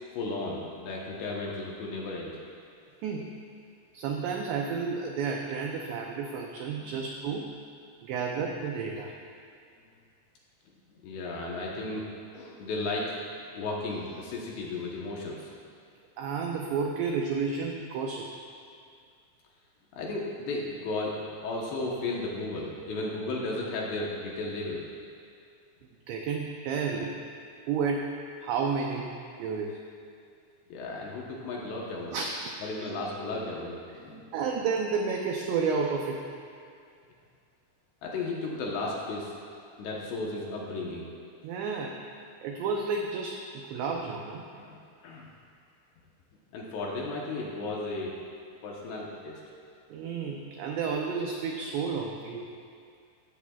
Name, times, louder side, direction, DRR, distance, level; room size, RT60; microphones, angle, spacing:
voice 1, 0.1-2.4 6.8-7.0 11.0-12.0 12.3-13.2 13.5-15.5 19.9-24.8 30.7-32.2 32.6-34.3 38.0-39.3 39.8-41.1 44.6-44.8 45.0-45.3 46.5-48.2 48.6-49.4, left 2 dB, 70° left, -3 dB, 2.8 m, -34 dB
voice 2, 3.9-7.5 8.0-9.1 16.2-18.3 26.1-27.1 27.7-28.1 28.4-29.1 29.4-29.8 32.1-32.9 34.3-36.2 41.4-42.0 42.4-44.4 49.9-52.5, right 5 dB, 90° right, 1 dB, 2.4 m, -31 dB
16.0 x 15.0 x 2.4 m, 2.3 s
omnidirectional pair, 5.9 m